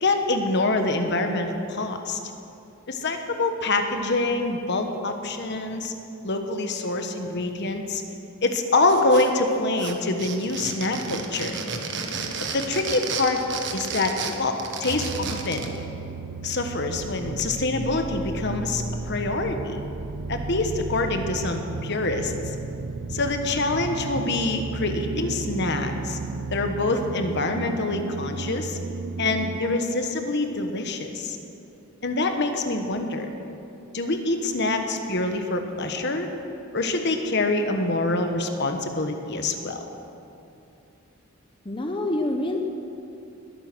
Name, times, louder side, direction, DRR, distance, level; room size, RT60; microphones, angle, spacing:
voice 1, 0.0-2.2 2.9-5.9 6.2-8.0 8.4-11.5 12.5-13.4 13.7-15.7 16.4-19.8 20.3-22.5 23.1-26.2 26.5-28.8 29.2-31.4 32.0-33.3 33.9-36.3 36.7-39.9, left 2 dB, 55° left, 5 dB, 1.2 m, -25 dB
sound 1, 8.9-9.5 9.8-15.8, right 5 dB, 55° right, 1.4 m, -32 dB
sound 2, 14.9-29.6, right 3 dB, 85° right, 0.6 m, -33 dB
voice 2, 41.6-42.6, left 1 dB, 25° left, 2 dB, 0.8 m, -26 dB
20.5 x 9.4 x 6.2 m, 2.8 s
head